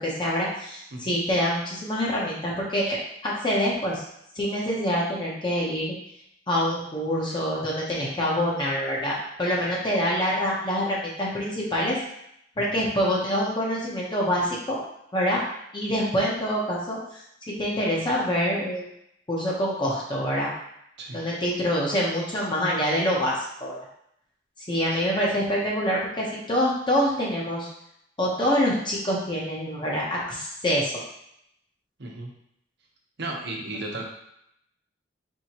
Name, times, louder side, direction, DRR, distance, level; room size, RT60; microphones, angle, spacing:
voice 1, 0.0-4.0 4.3-5.9 6.5-12.0 12.6-14.8 15.1-15.4 15.7-17.2 17.6-18.9 19.3-20.5 21.1-23.8 24.6-27.7 28.2-30.9, equal, 25° left, -5 dB, 0.8 m, -26 dB
voice 2, 32.0-32.3 33.2-34.0, right 2 dB, 65° right, -1 dB, 1.0 m, -34 dB
4.5 x 3.4 x 2.9 m, 0.75 s
head